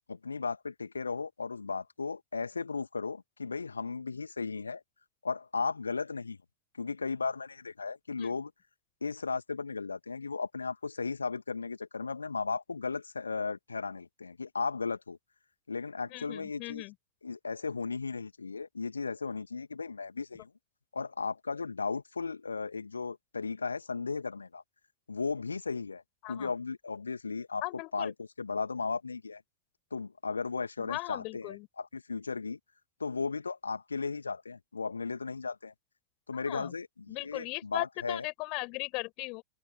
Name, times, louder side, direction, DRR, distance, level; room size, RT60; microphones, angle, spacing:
voice 1, 0.1-4.8 5.2-6.4 6.8-8.5 9.0-15.2 15.7-16.8 17.2-20.5 20.9-24.6 25.1-26.0 26.3-27.6 27.9-29.4 29.9-32.6 33.0-35.7 36.3-38.3, left 4 dB, 75° left, 1.6 m, -35 dB
voice 2, 16.1-16.9 26.2-26.5 27.6-28.1 30.8-31.7 36.5-36.7 37.1-39.4, left 27 dB, 40° left, 4.6 m, -38 dB
figure-of-eight pair, 90°, 0 cm